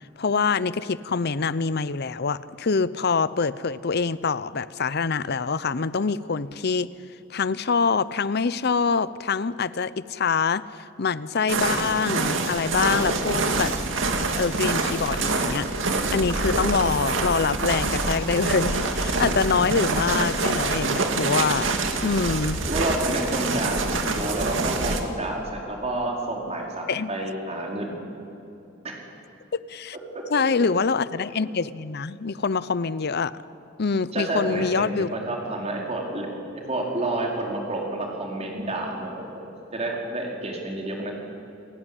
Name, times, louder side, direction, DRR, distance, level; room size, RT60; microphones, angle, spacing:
voice 1, 0.2-6.9 7.3-10.6 11.0-13.7 14.4-15.7 16.1-21.8 22.0-22.6 26.9-27.1 29.5-30.0 30.3-33.3 33.8-35.1, left 5 dB, 55° left, 17 dB, 0.7 m, -25 dB
sound 1, 11.5-25.0, right 3 dB, 70° right, 2.3 m, -26 dB
voice 2, 22.7-28.0 28.8-28.9 30.1-30.4 34.1-36.3 36.7-39.4 39.7-41.1, right 2 dB, 35° right, -1 dB, 4.9 m, -29 dB
29.0 x 16.5 x 10.0 m, 2.9 s
head